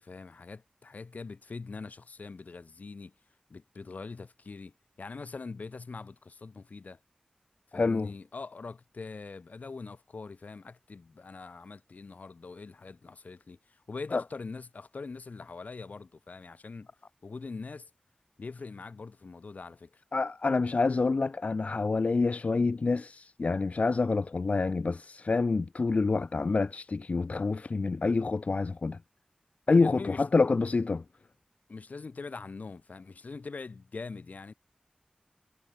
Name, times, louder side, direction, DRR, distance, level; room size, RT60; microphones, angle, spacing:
voice 1, 0.0-3.1 3.5-7.0 7.7-16.9 17.2-17.9 18.4-20.0 29.8-30.3 31.7-34.5, left 4 dB, 85° left, 2.7 m, -43 dB
voice 2, 7.7-8.1 14.1-14.2 20.1-29.0 29.7-31.0, left 3 dB, 60° left, 0.3 m, -27 dB
wide cardioid pair, 50°, 3 cm